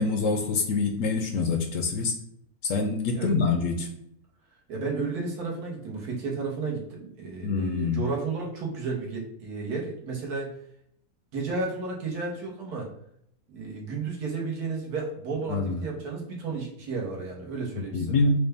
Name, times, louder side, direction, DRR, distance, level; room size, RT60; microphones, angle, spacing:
voice 1, 0.0-2.1 2.6-3.9 7.4-8.0 15.5-15.8 17.9-18.3, left 4 dB, 70° left, 4 dB, 0.8 m, -25 dB
voice 2, 4.7-10.5 11.3-12.9 13.5-18.2, right 4 dB, 80° right, -2 dB, 1.6 m, -32 dB
4.8 x 2.2 x 3.3 m, 0.74 s
omnidirectional pair, 1.6 m